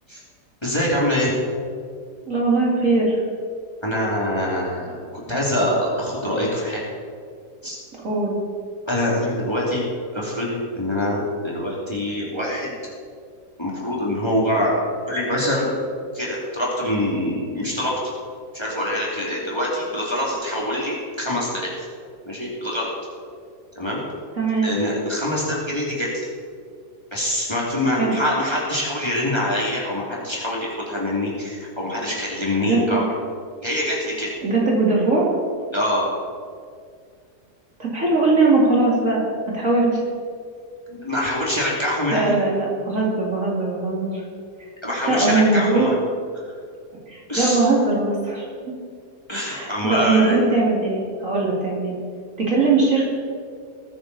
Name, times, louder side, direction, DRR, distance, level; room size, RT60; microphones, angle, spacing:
voice 1, 0.6-1.4 3.8-6.8 7.6-7.8 8.9-9.9 10.1-12.9 13.6-14.8 15.1-15.7 16.1-18.1 18.5-21.9 22.2-22.9 23.7-24.0 24.6-26.3 27.1-33.0 33.6-34.3 35.7-36.1 40.9-42.3 44.8-46.0 46.3-46.5 47.3-47.6 49.3-50.4, left 1 dB, 15° left, -5 dB, 2.8 m, -24 dB
voice 2, 2.3-3.2 8.0-8.3 24.4-24.7 28.0-28.1 32.6-33.0 34.4-35.3 37.8-39.2 39.5-40.0 42.1-44.2 45.1-45.9 47.1-48.7 49.5-51.9 52.4-53.1, right 3 dB, 50° right, -4 dB, 2.9 m, -20 dB
20.0 x 9.5 x 4.2 m, 2.2 s
omnidirectional pair, 1.8 m